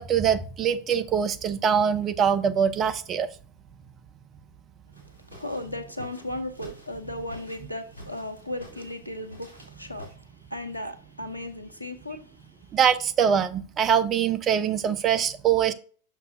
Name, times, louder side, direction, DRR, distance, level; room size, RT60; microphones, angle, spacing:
voice 1, 0.0-3.3 12.7-15.7, right 8 dB, 30° right, 0.6 m, -23 dB
sound 1, 4.9-10.1, equal, 80° right, 3.4 m, -49 dB
voice 2, 5.3-12.7, left 1 dB, 85° left, 0.9 m, -36 dB
6.7 x 6.5 x 2.6 m
figure-of-eight pair, 90°, 0 cm